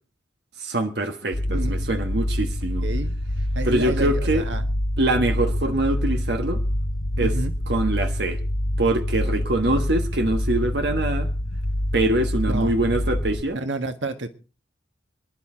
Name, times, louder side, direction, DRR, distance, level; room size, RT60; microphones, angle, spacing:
voice 1, 0.6-2.9 3.6-4.4 5.0-6.6 7.2-7.3 7.7-8.4 8.8-11.3 11.9-13.6, right 1 dB, 60° right, 1.3 m, -24 dB
sound 1, 1.3-13.4, left 1 dB, 50° left, 1.0 m, -26 dB
voice 2, 1.5-1.9 2.8-3.1 3.5-4.7 7.2-7.5 12.5-12.7 13.5-14.3, right 2 dB, 85° right, 1.7 m, -30 dB
25.5 x 11.0 x 3.8 m
head